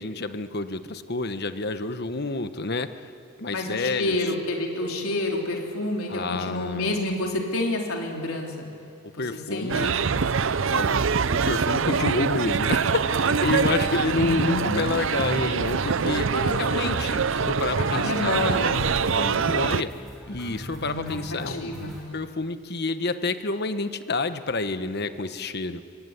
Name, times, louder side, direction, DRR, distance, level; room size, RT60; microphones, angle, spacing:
voice 1, 0.0-2.9 3.4-4.3 6.1-7.1 9.2-10.0 10.7-11.0 11.3-16.3 16.6-18.5 19.1-19.9 20.3-21.7 22.1-25.8, left 3 dB, 50° left, 10 dB, 1.2 m, -29 dB
voice 2, 3.5-8.7 9.1-9.2 9.5-10.0 11.8-12.1 14.1-14.8 16.1-17.3 17.8-18.9 20.7-21.9, left 1 dB, 80° left, 0 dB, 3.9 m, -29 dB
sound 1, 9.7-19.8, right 5 dB, 60° right, 0.6 m, -24 dB
sound 2, 13.4-22.1, equal, ahead, 7.9 m, -41 dB
25.0 x 23.0 x 10.0 m, 2.5 s
head